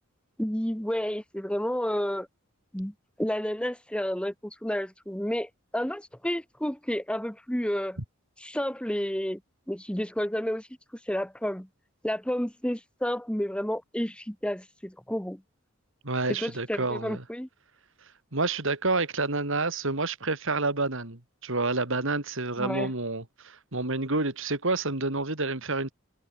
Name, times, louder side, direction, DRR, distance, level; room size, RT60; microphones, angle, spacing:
voice 1, 0.4-2.3 2.7-8.0 8.4-9.4 9.7-10.7 11.1-11.7 12.0-15.4 16.3-17.5 22.6-22.9, equal, 5° left, 1.6 m, -31 dB
voice 2, 16.0-17.2 18.3-25.9, right 3 dB, 65° right, 3.2 m, -29 dB
head